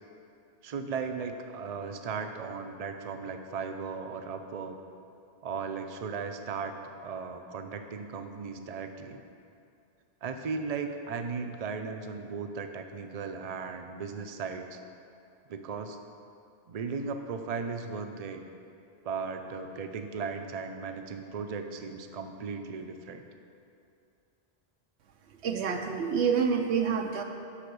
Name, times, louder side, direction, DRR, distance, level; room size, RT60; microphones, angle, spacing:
voice 1, 0.6-4.8 5.4-9.2 10.2-14.8 15.5-16.0 16.7-18.5 19.0-23.3, right 5 dB, 45° right, 6 dB, 0.6 m, -36 dB
voice 2, 25.4-27.2, right 6 dB, 90° right, 4 dB, 1.0 m, -27 dB
8.2 x 5.8 x 6.9 m, 2.7 s
omnidirectional pair, 1.1 m